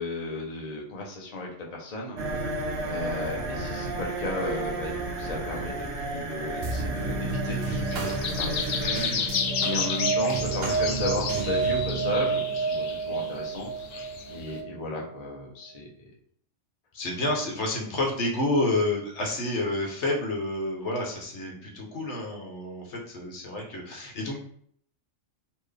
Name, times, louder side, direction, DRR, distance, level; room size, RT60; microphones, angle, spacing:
voice 1, 0.0-2.2 2.8-8.9 9.6-13.9 14.3-16.1, left 2 dB, 35° left, -2 dB, 0.8 m, -35 dB
sound 1, 2.2-11.8, right 2 dB, 60° right, 1.0 m, -34 dB
sound 2, 6.6-15.3, right 4 dB, 85° right, 1.1 m, -30 dB
sound 3, 7.5-14.5, left 6 dB, 80° left, 1.0 m, -32 dB
voice 2, 8.8-9.7 16.9-24.4, left 1 dB, 60° left, 0 dB, 1.3 m, -29 dB
4.3 x 3.0 x 3.3 m, 0.63 s
omnidirectional pair, 1.4 m